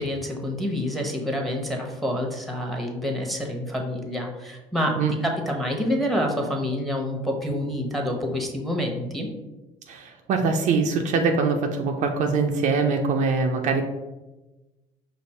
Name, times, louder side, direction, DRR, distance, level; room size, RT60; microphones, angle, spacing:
voice 1, 0.0-4.9 5.2-9.3, left 1 dB, ahead, 1 dB, 1.1 m, -27 dB
voice 2, 9.9-13.8, right 4 dB, 55° right, 3 dB, 0.5 m, -23 dB
5.2 x 2.0 x 4.2 m, 1.1 s
hypercardioid pair, 70°, 15 cm